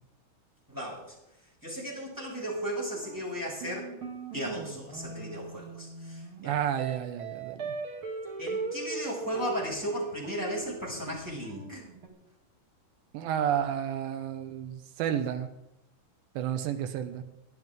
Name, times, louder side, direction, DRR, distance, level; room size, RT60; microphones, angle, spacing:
voice 1, 0.7-1.1 1.6-3.9 4.3-6.6 8.4-11.8, equal, 5° right, -4 dB, 5.6 m, -35 dB
sound 1, 2.9-12.1, right 4 dB, 45° right, 1.8 m, -39 dB
voice 2, 6.4-7.7 13.1-15.5 16.4-17.2, right 9 dB, 75° right, 7 dB, 2.9 m, -31 dB
23.0 x 11.5 x 3.7 m, 0.83 s
omnidirectional pair, 5.7 m